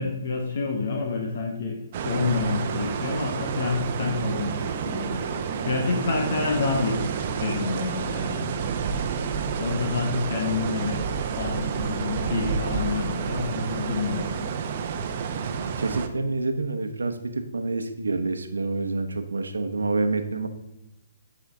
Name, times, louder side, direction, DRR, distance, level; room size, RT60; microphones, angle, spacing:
voice 1, 0.0-5.2 5.6-7.0 7.3-8.5 9.6-11.0 11.4-14.5, left 4 dB, 60° left, 2 dB, 1.3 m, -28 dB
sound 1, 1.9-16.1, right 6 dB, 45° right, 0.8 m, -29 dB
voice 2, 15.4-20.5, right 3 dB, 85° right, 7 dB, 1.0 m, -28 dB
10.0 x 4.9 x 3.6 m, 0.95 s
hypercardioid pair, 140°, 0 cm